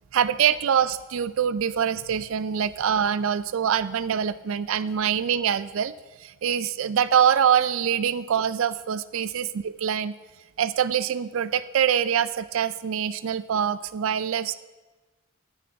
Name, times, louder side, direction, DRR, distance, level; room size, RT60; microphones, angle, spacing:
voice 1, 0.1-5.9 6.2-10.2 10.6-14.6, right 8 dB, 70° right, 15 dB, 0.4 m, -24 dB
18.5 x 10.0 x 3.5 m, 1.2 s
head